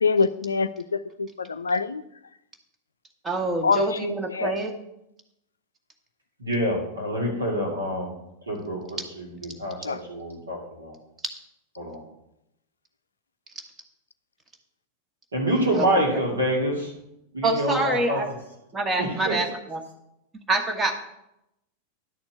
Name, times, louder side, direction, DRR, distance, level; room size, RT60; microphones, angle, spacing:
voice 1, 0.0-2.0 3.6-4.5 9.8-10.0, left 5 dB, 75° left, 13 dB, 0.5 m, -25 dB
voice 2, 3.2-4.7 15.7-15.9 16.1-16.2 17.4-18.3 18.7-19.8 20.5-20.9, right 2 dB, 15° right, 4 dB, 1.4 m, -26 dB
voice 3, 6.4-8.1 8.5-10.9 11.8-12.0 15.3-16.9 17.3-18.2 19.0-19.4, equal, 75° right, 0 dB, 2.4 m, -27 dB
10.5 x 4.4 x 7.4 m, 0.84 s
figure-of-eight pair, 90°, 0 cm